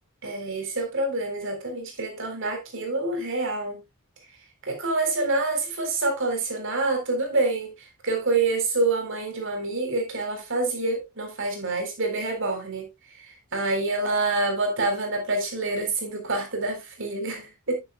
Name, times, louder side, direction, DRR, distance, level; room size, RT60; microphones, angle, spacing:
voice 1, 0.2-3.8 4.6-7.7 8.0-12.9 13.2-17.8, right 2 dB, 60° right, 3.6 m, -27 dB
10.0 x 9.5 x 2.2 m
head